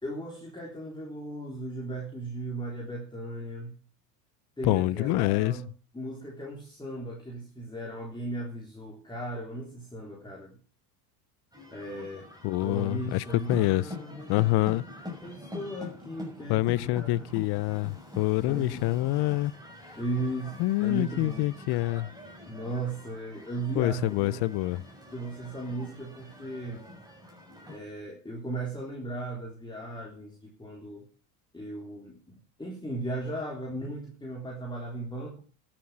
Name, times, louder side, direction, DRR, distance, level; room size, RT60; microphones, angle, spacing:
voice 1, 0.0-3.8 4.6-5.7 5.9-10.6 11.7-12.3 12.6-14.4 15.2-17.3 18.4-18.9 19.9-21.5 22.5-24.5 25.1-26.9 27.7-31.1 31.5-35.4, right 2 dB, 10° left, 3.7 m, -37 dB
voice 2, 4.6-5.6 12.4-13.8 14.3-14.8 16.5-19.5 20.6-22.1 23.8-24.8, left 18 dB, 50° left, 0.7 m, -26 dB
sound 1, 11.5-27.8, left 2 dB, 5° right, 6.3 m, -45 dB
12.5 x 7.7 x 7.4 m
hypercardioid pair, 95°, 50 cm